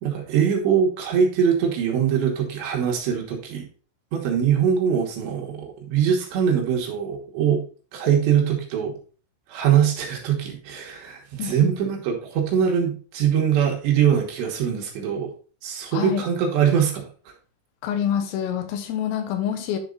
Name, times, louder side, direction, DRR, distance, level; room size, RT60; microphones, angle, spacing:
voice 1, 0.0-3.7 4.1-7.6 7.9-8.9 9.5-15.3 15.6-17.1, right 8 dB, 70° right, 1 dB, 3.3 m, -22 dB
voice 2, 11.4-11.7 15.9-16.2 17.8-19.8, left 9 dB, 85° left, 7 dB, 3.8 m, -26 dB
10.5 x 4.5 x 3.8 m, 0.38 s
omnidirectional pair, 5.8 m